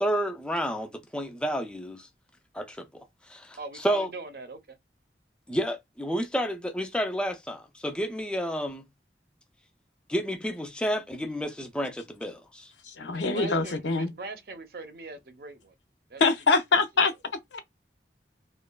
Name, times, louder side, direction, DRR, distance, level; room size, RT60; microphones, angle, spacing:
voice 1, 0.0-2.1 2.5-2.9 3.3-4.1 5.5-8.9 10.1-12.7, equal, 5° left, 0.3 m, -30 dB
voice 2, 3.6-4.8 13.1-15.7 16.1-16.2 16.7-16.8, right 3 dB, 55° right, 0.5 m, -41 dB
voice 3, 13.0-14.1 16.2-17.1 17.5-17.6, left 4 dB, 85° left, 0.5 m, -24 dB
3.0 x 2.1 x 2.2 m
head